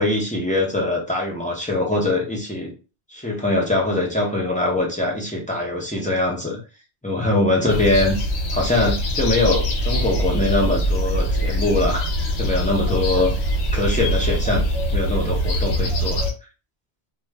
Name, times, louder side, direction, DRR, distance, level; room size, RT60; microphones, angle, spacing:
voice 1, 0.0-2.7 3.1-6.6 7.0-8.2 8.5-12.1 12.4-13.3 13.7-14.6 14.9-16.2, left 2 dB, 10° left, -3 dB, 0.6 m, -22 dB
sound 1, 7.7-16.3, equal, 70° left, 0.9 m, -23 dB
2.4 x 2.3 x 3.2 m, 0.32 s
omnidirectional pair, 1.2 m